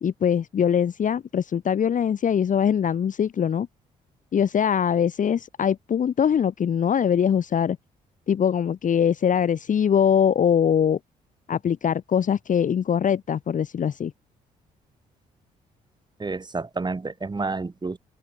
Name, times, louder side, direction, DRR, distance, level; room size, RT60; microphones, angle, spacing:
voice 1, 0.0-3.7 4.3-7.8 8.3-11.0 11.5-14.1, left 8 dB, 50° left, 0.9 m, -22 dB
voice 2, 16.2-18.0, right 3 dB, 25° right, 1.7 m, -29 dB
supercardioid pair, 55°, 17 cm